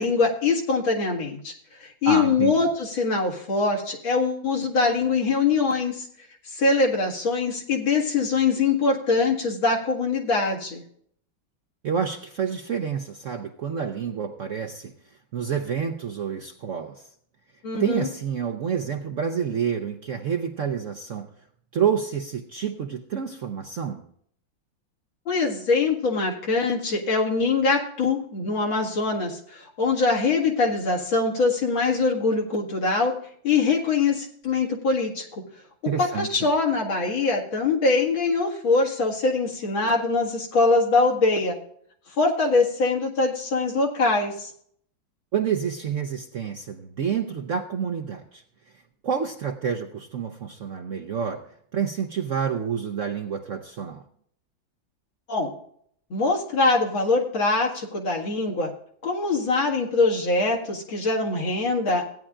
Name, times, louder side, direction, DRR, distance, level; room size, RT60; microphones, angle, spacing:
voice 1, 0.0-1.5 1.8-6.1 6.4-10.8 17.6-18.1 25.3-33.1 33.4-35.4 36.0-41.6 42.2-44.5 55.3-55.5 56.1-58.7 59.0-62.0, left 3 dB, 85° left, -1 dB, 2.8 m, -23 dB
voice 2, 2.0-2.7 11.8-17.1 17.8-21.3 21.7-24.0 35.9-36.3 45.3-48.4 48.7-51.4 51.7-54.0, right 7 dB, 65° right, 5 dB, 0.7 m, -28 dB
16.5 x 9.9 x 2.5 m, 0.64 s
omnidirectional pair, 2.1 m